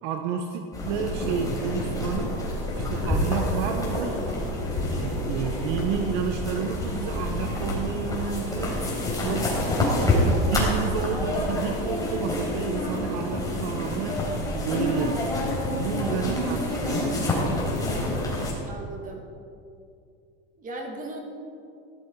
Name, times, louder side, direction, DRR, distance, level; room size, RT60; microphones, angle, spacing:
voice 1, 0.0-2.4 2.7-4.3 4.9-8.8 9.2-9.8 10.0-15.3 15.8-17.3, right 6 dB, 60° right, 5 dB, 1.2 m, -31 dB
sound 1, 0.7-18.5, left 1 dB, 10° left, 4.1 m, -27 dB
voice 2, 18.0-19.3 20.6-21.2, right 2 dB, 25° right, 2 dB, 2.3 m, -39 dB
16.0 x 12.0 x 4.9 m, 2.4 s
supercardioid pair, 140°, 30 cm